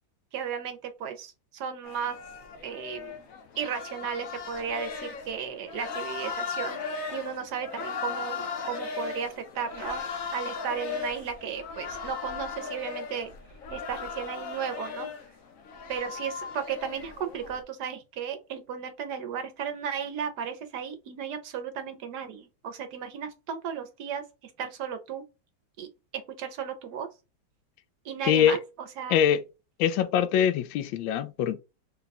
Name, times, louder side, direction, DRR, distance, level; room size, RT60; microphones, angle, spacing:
voice 1, 0.3-2.2 2.6-3.3 3.6-6.8 7.1-10.0 10.3-13.3 13.7-15.1 15.9-25.2 25.8-27.1 28.0-29.2, right 7 dB, 70° right, 1.2 m, -35 dB
sound 1, 1.8-17.6, left 5 dB, 60° left, 1.0 m, -37 dB
voice 2, 28.2-28.6 29.1-29.4 29.8-31.6, left 9 dB, 85° left, 1.3 m, -23 dB
4.1 x 2.3 x 4.1 m
omnidirectional pair, 2.0 m